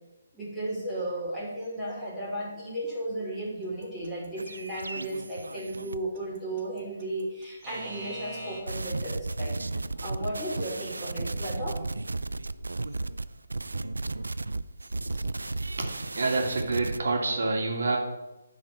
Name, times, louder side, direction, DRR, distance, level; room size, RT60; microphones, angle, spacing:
voice 1, 0.3-11.8 15.1-15.6, right 1 dB, ahead, -9 dB, 3.0 m, -35 dB
Alarm / Clock, 3.8-8.6, right 2 dB, 40° right, 1.5 m, -41 dB
sound 1, 4.4-6.0 8.5-17.0, right 2 dB, 75° right, 0.4 m, -34 dB
voice 2, 15.8-18.0, right 3 dB, 60° right, 1 dB, 2.0 m, -27 dB
10.5 x 4.1 x 6.4 m, 0.99 s
figure-of-eight pair, 140°, 0 cm